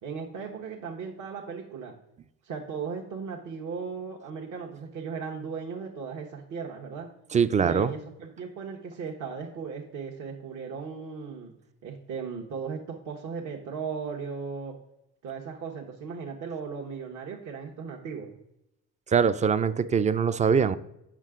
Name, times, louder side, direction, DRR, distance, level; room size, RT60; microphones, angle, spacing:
voice 1, 0.0-2.0 2.4-7.1 7.6-11.5 11.8-14.7 15.2-18.3, right 5 dB, 60° right, 1.1 m, -37 dB
voice 2, 7.3-7.9 19.1-20.8, right 6 dB, 25° right, 0.4 m, -23 dB
7.4 x 5.8 x 3.7 m
cardioid pair, 95°, 32 cm